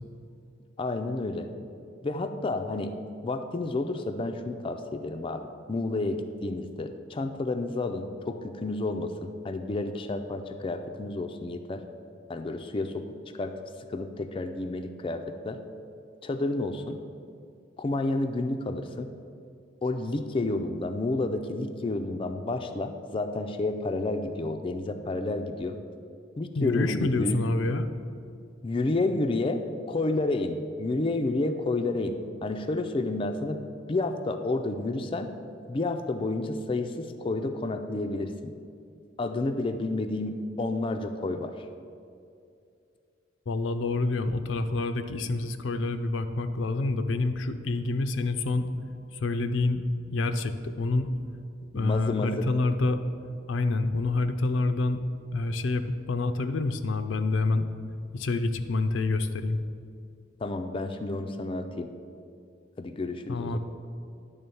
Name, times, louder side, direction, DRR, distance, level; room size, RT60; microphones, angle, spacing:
voice 1, 0.8-1.5 2.0-2.9 3.2-5.4 5.7-11.8 12.3-13.1 13.3-13.5 13.9-15.6 16.2-17.0 17.8-19.1 19.8-25.8 26.4-27.4 28.6-33.6 33.9-35.3 35.7-38.5 39.2-41.7 51.7-52.5 60.4-61.9 62.8-63.6, left 2 dB, 25° left, 6 dB, 0.4 m, -30 dB
voice 2, 26.6-27.9 43.5-48.7 49.1-49.9 50.1-51.1 51.7-53.0 53.5-55.0 55.3-57.7 58.1-59.6 63.3-63.6, left 2 dB, 80° left, 9 dB, 0.5 m, -27 dB
10.5 x 3.6 x 6.9 m, 2.4 s
head